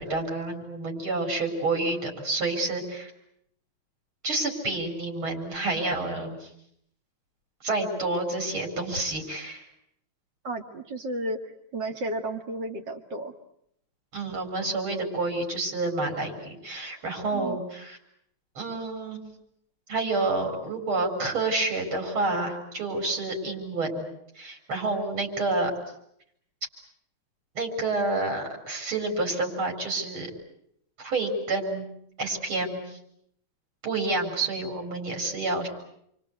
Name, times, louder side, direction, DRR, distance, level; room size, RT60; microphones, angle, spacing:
voice 1, 0.0-3.1 4.2-6.5 7.6-9.7 14.1-18.0 18.6-19.2 19.9-24.1 24.4-25.7 27.6-30.3 31.0-31.8 32.2-33.0 33.8-35.7, right 2 dB, 75° right, 3 dB, 5.1 m, -29 dB
voice 2, 10.4-13.3 17.3-17.6, right 1 dB, 55° right, 4 dB, 2.7 m, -33 dB
29.0 x 24.0 x 8.1 m, 0.74 s
omnidirectional pair, 2.3 m